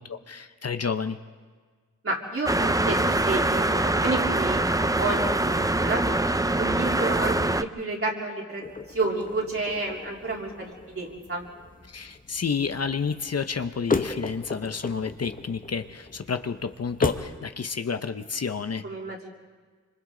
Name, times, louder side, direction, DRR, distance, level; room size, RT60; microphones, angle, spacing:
voice 1, 0.1-1.2 11.9-18.8, left 5 dB, 55° left, 9 dB, 0.8 m, -30 dB
voice 2, 2.0-6.2 6.6-7.4 7.8-11.5 18.8-19.3, right 3 dB, 45° right, -2 dB, 3.6 m, -30 dB
sound 1, 2.5-7.6, right 2 dB, 10° right, 0.5 m, -24 dB
sound 2, 8.6-17.4, left 3 dB, 25° left, 1.0 m, -35 dB
27.0 x 25.5 x 3.9 m, 1.5 s
wide cardioid pair, 105°, 31 cm